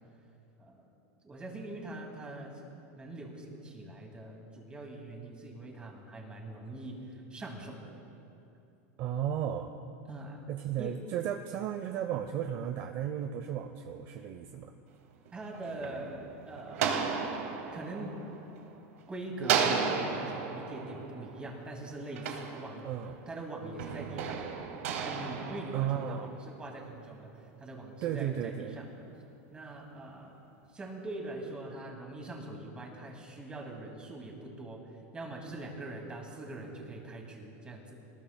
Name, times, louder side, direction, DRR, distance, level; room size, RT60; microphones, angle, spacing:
voice 1, 1.2-7.9 10.1-10.4 10.8-11.0 15.3-17.0 17.7-18.2 19.1-22.8 23.3-24.5 25.0-29.1 29.5-30.3 30.7-34.8 35.1-37.9, right 2 dB, 15° right, 0 dB, 2.2 m, -42 dB
voice 2, 9.0-9.7 10.5-14.7 22.8-23.2 25.7-26.3 28.0-28.8, right 10 dB, 40° right, 7 dB, 0.6 m, -34 dB
sound 1, 15.3-19.0 19.4-23.2 23.8-26.4, right 6 dB, 90° right, 1.7 m, -34 dB
22.0 x 19.5 x 2.2 m, 2.8 s
supercardioid pair, 160°, 8 cm